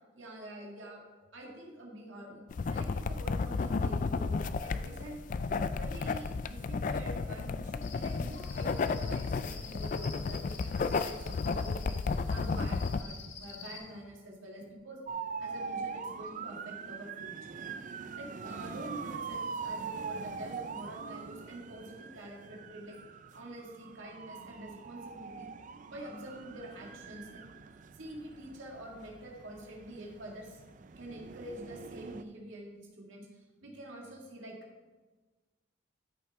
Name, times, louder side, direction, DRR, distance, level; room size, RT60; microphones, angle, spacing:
voice 1, 0.2-1.0 1.3-2.4 2.7-5.2 5.7-12.0 12.3-15.0 15.4-17.6 18.1-22.9 23.3-25.5 25.9-27.4 27.9-30.6 31.0-33.3 33.6-34.6, right 1 dB, 85° right, -2 dB, 1.9 m, -46 dB
sound 1, 2.5-13.0, left 4 dB, 40° left, 0.3 m, -33 dB
Cricket, 7.8-13.8, left 5 dB, 85° left, 1.5 m, -49 dB
sound 2, 15.1-32.2, right 5 dB, 40° right, 0.4 m, -43 dB
13.0 x 6.0 x 3.6 m, 1.3 s
head